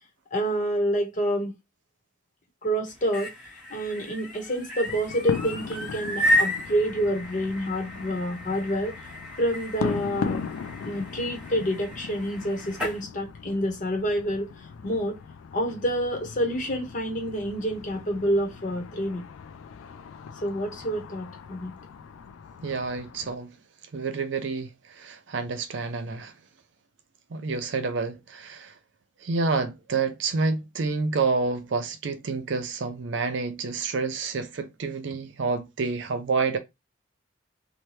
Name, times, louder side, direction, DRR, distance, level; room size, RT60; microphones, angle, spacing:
voice 1, 0.3-1.5 2.6-3.3 3.7-9.0 9.4-10.5 10.8-15.2 15.5-19.3 20.4-21.7, equal, 40° left, 0.9 m, -28 dB
sound 1, 2.9-13.0, equal, 5° right, 1.1 m, -32 dB
sound 2, 4.8-23.4, left 6 dB, 85° left, 0.3 m, -39 dB
voice 2, 22.6-23.5 23.9-26.3 27.3-28.7 29.2-36.6, right 4 dB, 60° right, 0.5 m, -28 dB
2.8 x 2.2 x 3.1 m
head